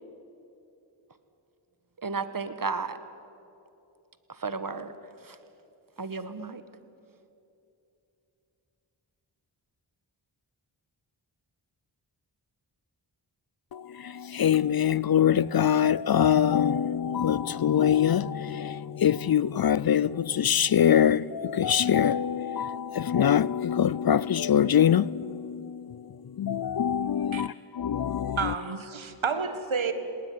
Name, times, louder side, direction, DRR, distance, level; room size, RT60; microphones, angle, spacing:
voice 1, 2.0-3.0 4.4-4.9 5.2-5.3 6.0-6.6, right 4 dB, 45° right, 1.6 m, -33 dB
voice 2, 13.7-25.8 26.4-28.5, left 9 dB, 50° left, 0.5 m, -24 dB
voice 3, 28.4-29.9, right 5 dB, 70° right, 1.8 m, -30 dB
19.5 x 19.5 x 9.5 m
cardioid pair, 40°, 48 cm